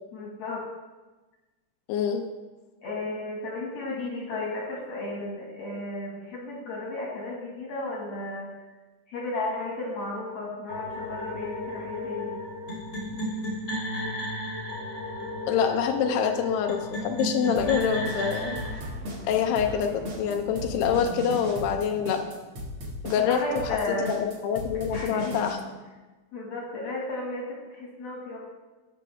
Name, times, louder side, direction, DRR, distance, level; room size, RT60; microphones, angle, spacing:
voice 1, 0.1-0.6 2.8-8.5 9.1-12.3 23.2-24.1 24.9-25.4 26.3-28.4, left 2 dB, 60° left, -3 dB, 1.7 m, -34 dB
voice 2, 1.9-2.3 15.5-18.6 19.2-22.2 23.0-23.6 24.0-25.6, left 7 dB, 90° left, 4 dB, 2.3 m, -26 dB
sound 1, 10.7-18.7, equal, 45° left, 0.7 m, -33 dB
sound 2, 17.6-25.5, left 1 dB, 55° right, 1.4 m, -36 dB
sound 3, 17.6-22.7, right 2 dB, 80° right, 3.5 m, -43 dB
17.0 x 6.2 x 3.3 m, 1.2 s
omnidirectional pair, 5.4 m